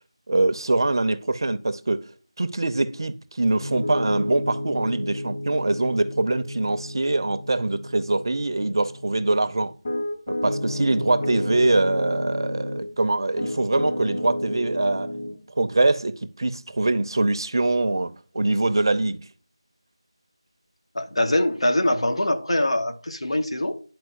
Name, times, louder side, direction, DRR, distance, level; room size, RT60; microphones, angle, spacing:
voice 1, 0.3-2.1 2.4-9.7 10.3-15.1 15.6-19.2, right 2 dB, 45° right, 0.6 m, -23 dB
Piano, 3.6-12.9 13.4-15.4, left 1 dB, 30° left, 2.1 m, -31 dB
voice 2, 20.9-23.8, left 1 dB, 70° left, 1.2 m, -23 dB
11.0 x 4.5 x 2.6 m
figure-of-eight pair, 170°, 3 cm